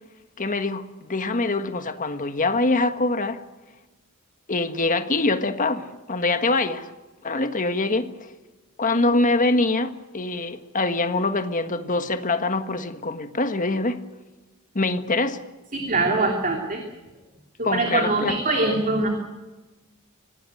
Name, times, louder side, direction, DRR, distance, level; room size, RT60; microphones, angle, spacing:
voice 1, 0.4-3.4 4.5-6.9 7.2-8.3 8.8-14.0 14.7-15.4 17.6-18.4, left 2 dB, 35° left, 1.6 m, -24 dB
voice 2, 15.7-16.8 17.6-19.1, right 2 dB, 35° right, 3.1 m, -23 dB
25.5 x 18.5 x 7.9 m
head